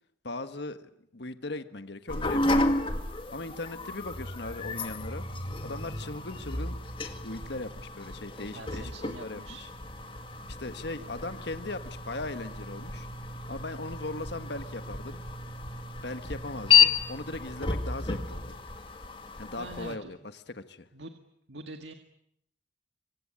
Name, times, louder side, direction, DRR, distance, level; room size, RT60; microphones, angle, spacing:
voice 1, 0.2-2.7 3.3-5.3 5.6-6.8 7.2-9.7 10.5-13.1 13.5-15.2 16.0-18.6 19.4-20.9, left 2 dB, 60° left, 10 dB, 1.6 m, -39 dB
sound 1, 2.1-19.9, left 5 dB, 30° left, 2.1 m, -31 dB
voice 2, 8.5-9.6 19.6-20.1 20.9-21.1 21.5-21.9, right 2 dB, 70° right, 6 dB, 1.9 m, -43 dB
26.0 x 24.5 x 8.8 m, 0.74 s
head